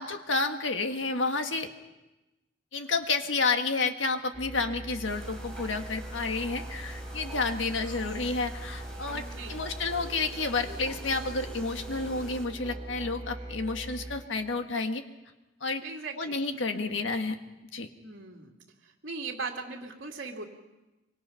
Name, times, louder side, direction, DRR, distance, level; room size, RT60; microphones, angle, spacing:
voice 1, 0.0-1.7 2.7-9.2 9.5-15.0 15.6-15.8 16.2-17.4 17.7-17.9, left 3 dB, 75° left, 6 dB, 1.7 m, -30 dB
sound 1, 4.3-14.2, right 1 dB, 30° right, 5.1 m, -41 dB
sound 2, 5.0-12.5, right 1 dB, 5° left, 3.9 m, -47 dB
voice 2, 7.4-7.8 9.1-9.6 15.8-16.4 16.7-17.0 18.0-18.5 18.8-20.4, right 4 dB, 70° right, -1 dB, 2.6 m, -39 dB
25.5 x 24.0 x 5.8 m, 1.0 s
head